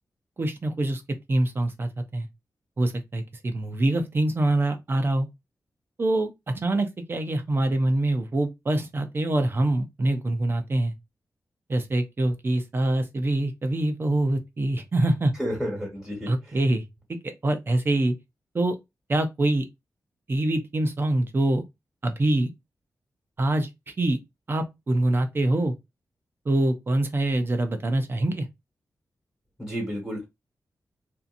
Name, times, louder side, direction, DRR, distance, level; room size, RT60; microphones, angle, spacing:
voice 1, 0.4-1.0 1.3-2.3 2.8-5.3 6.0-10.9 11.7-15.3 16.3-16.8 17.2-18.1 18.5-18.7 19.1-19.6 20.3-21.6 22.0-22.5 23.4-23.7 24.0-24.2 24.5-25.7 26.5-28.5, right 1 dB, 35° right, 0.6 m, -24 dB
voice 2, 15.4-16.6 29.6-30.2, equal, 5° right, 1.6 m, -31 dB
2.7 x 2.5 x 2.5 m
wide cardioid pair, 135°, 7 cm